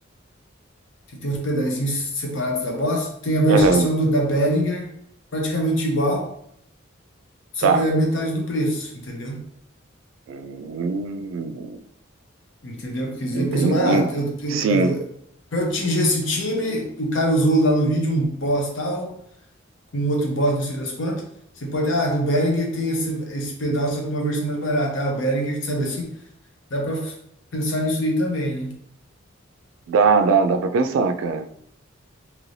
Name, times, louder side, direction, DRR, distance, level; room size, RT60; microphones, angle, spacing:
voice 1, 1.1-4.9 5.3-6.3 7.5-9.4 12.6-15.0 15.5-19.1 19.9-21.2 21.6-26.1 26.7-27.1 27.5-28.7, equal, 70° left, 1 dB, 0.8 m, -23 dB
voice 2, 3.5-3.9 7.6-7.9 10.3-11.8 13.3-14.1 14.5-14.9 29.9-31.5, right 4 dB, 85° right, 8 dB, 0.3 m, -21 dB
3.1 x 3.0 x 2.6 m, 0.71 s
head